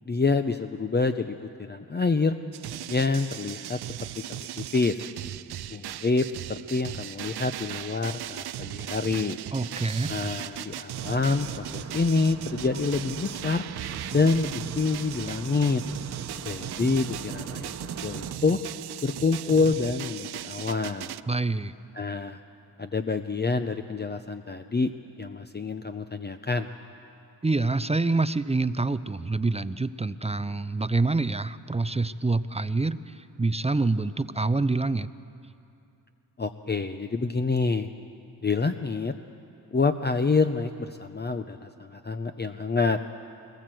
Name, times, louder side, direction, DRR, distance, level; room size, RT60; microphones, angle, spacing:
voice 1, 0.1-2.4 2.9-3.8 4.3-5.1 5.7-9.4 10.1-13.6 14.1-15.8 16.4-17.7 18.0-18.6 19.0-21.1 22.0-22.4 22.8-24.9 25.2-26.7 36.4-37.9 38.4-39.1 39.7-43.0, left 4 dB, 25° left, 7 dB, 0.7 m, -27 dB
sound 1, 2.5-21.2, right 12 dB, 75° right, 0.5 m, -38 dB
voice 2, 9.5-10.1 21.3-21.7 27.4-35.1, right 3 dB, 15° right, 14 dB, 0.6 m, -26 dB
sound 2, 10.9-18.3, right 4 dB, 40° right, 1.2 m, -41 dB
21.5 x 20.0 x 7.7 m, 2.7 s
cardioid pair, 70°, 39 cm